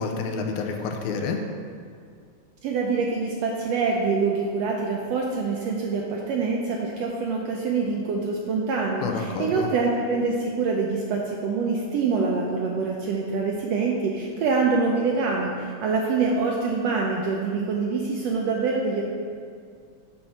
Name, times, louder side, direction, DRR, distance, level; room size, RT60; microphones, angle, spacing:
voice 1, 0.0-1.4 9.0-9.7, left 5 dB, 85° left, 4 dB, 2.1 m, -28 dB
voice 2, 2.6-19.0, right 4 dB, 80° right, -1 dB, 1.5 m, -25 dB
5.7 x 4.4 x 5.4 m, 2.2 s
omnidirectional pair, 3.4 m